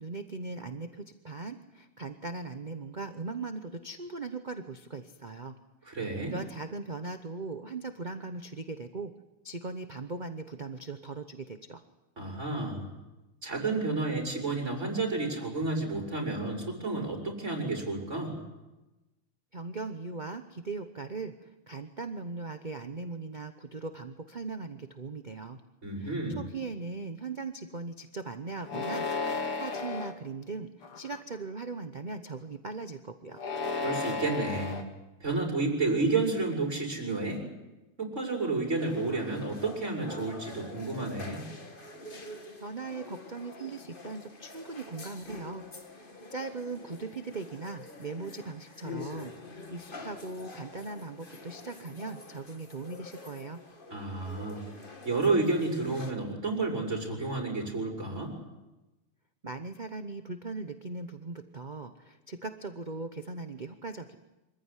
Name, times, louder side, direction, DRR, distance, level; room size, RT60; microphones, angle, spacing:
voice 1, 0.0-5.6 5.8-6.0 6.2-9.1 9.4-11.8 19.5-25.6 26.0-33.4 42.6-45.6 45.9-53.6 59.4-64.2, right 3 dB, 50° right, 8 dB, 0.5 m, -39 dB
voice 2, 5.8-6.3 12.2-12.9 13.4-18.4 25.8-26.4 33.8-34.9 35.2-37.4 38.0-41.4 53.9-54.6 55.0-58.3, right 3 dB, 30° right, -1 dB, 6.2 m, -31 dB
sound 1, 28.6-30.1 30.8-31.3 33.3-34.8, left 4 dB, 90° left, 3.0 m, -33 dB
sound 2, 38.8-56.1, left 3 dB, 25° left, 1.7 m, -46 dB
26.0 x 15.0 x 10.0 m, 1.0 s
omnidirectional pair, 2.4 m